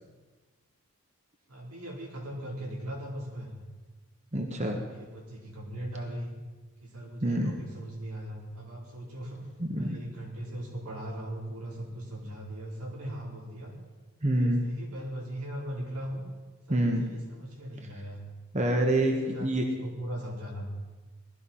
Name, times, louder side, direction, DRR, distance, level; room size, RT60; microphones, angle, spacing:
voice 1, 1.5-3.5 4.7-6.3 6.8-9.4 9.7-13.7 14.3-16.2 16.7-18.2 19.0-20.7, right 1 dB, 90° right, -2 dB, 4.4 m, -39 dB
voice 2, 4.3-4.8 7.2-7.5 9.6-10.0 14.2-14.7 16.7-17.1 18.5-19.7, right 1 dB, 30° right, 3 dB, 1.3 m, -26 dB
19.0 x 13.0 x 5.7 m, 1.3 s
head